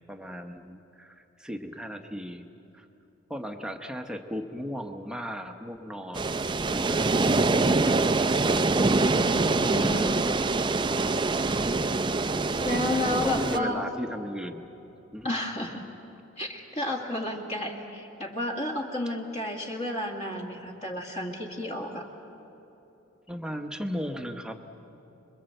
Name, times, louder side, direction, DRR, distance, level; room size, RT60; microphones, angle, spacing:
voice 1, 0.1-2.5 2.7-2.9 3.3-6.3 6.7-7.8 11.1-11.8 13.0-14.6 15.1-15.3 23.3-24.6, equal, 5° right, 5 dB, 1.0 m, -36 dB
sound 1, 6.1-13.6, right 3 dB, 20° right, 0.5 m, -24 dB
voice 2, 9.2-10.2 12.7-13.8 15.2-15.8 16.4-22.1, left 1 dB, 30° left, 0 dB, 2.0 m, -31 dB
26.5 x 22.5 x 7.9 m, 3.0 s
head